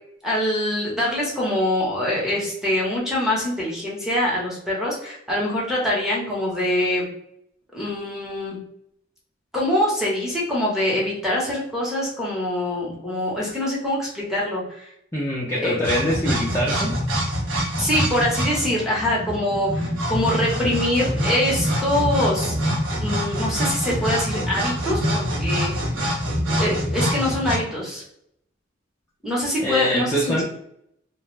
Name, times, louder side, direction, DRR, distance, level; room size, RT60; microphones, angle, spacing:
voice 1, 0.2-7.1 7.7-8.6 9.5-14.9 15.5-15.8 17.8-22.5 23.0-25.7 26.6-28.0 29.2-30.4, left 1 dB, 5° right, -5 dB, 0.8 m, -24 dB
voice 2, 15.1-17.0 29.6-30.4, equal, 15° left, -5 dB, 0.4 m, -24 dB
sound 1, 15.8-27.6, equal, 85° right, 0.8 m, -25 dB
2.3 x 2.2 x 3.1 m, 0.74 s
head